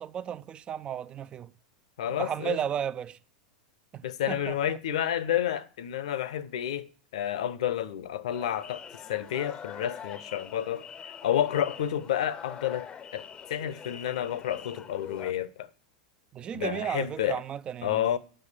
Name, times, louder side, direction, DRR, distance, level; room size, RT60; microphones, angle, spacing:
voice 1, 0.0-1.5 2.1-3.2 3.9-4.8 16.3-18.0, right 9 dB, 25° right, 0.5 m, -34 dB
voice 2, 2.0-2.6 4.0-6.9 7.1-8.8 9.1-10.8 11.2-12.9 13.1-13.2 13.5-15.7 16.5-17.4 17.8-18.2, left 10 dB, 60° left, 0.8 m, -30 dB
sound 1, 8.3-15.3, left 7 dB, 25° left, 0.7 m, -44 dB
9.1 x 6.6 x 8.3 m
figure-of-eight pair, 90°, 4 cm